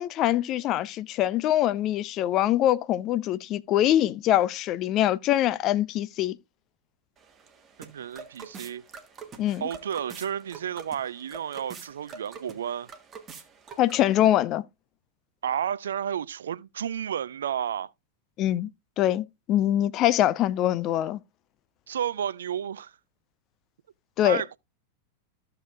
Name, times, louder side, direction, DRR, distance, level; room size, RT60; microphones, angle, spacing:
voice 1, 0.0-6.4 9.4-9.6 13.8-14.6 18.4-18.7 19.0-21.2 24.2-24.4, left 12 dB, 35° left, 0.4 m, -24 dB
sound 1, 7.2-14.3, right 5 dB, 25° right, 1.3 m, -46 dB
voice 2, 7.8-8.8 9.6-12.9 15.4-17.9 21.9-23.0 24.2-24.6, right 9 dB, 65° right, 0.4 m, -32 dB
14.0 x 6.7 x 2.2 m
figure-of-eight pair, 90°, 0 cm